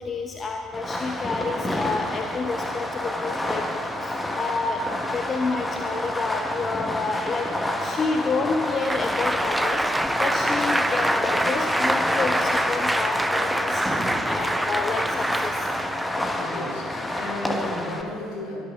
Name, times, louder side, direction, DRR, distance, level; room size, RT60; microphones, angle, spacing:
voice 1, 0.0-3.6 4.0-7.5 7.8-14.0 14.2-15.7, left 4 dB, 35° left, 3 dB, 0.9 m, -29 dB
Fireworks, 0.7-18.0, left 1 dB, 15° left, 1.5 m, -29 dB
Applause, 8.7-16.4, right 1 dB, 5° right, 0.7 m, -26 dB
voice 2, 16.3-18.7, left 1 dB, 65° left, 0 dB, 2.6 m, -33 dB
23.0 x 9.1 x 3.8 m, 2.1 s
figure-of-eight pair, 55°, 0 cm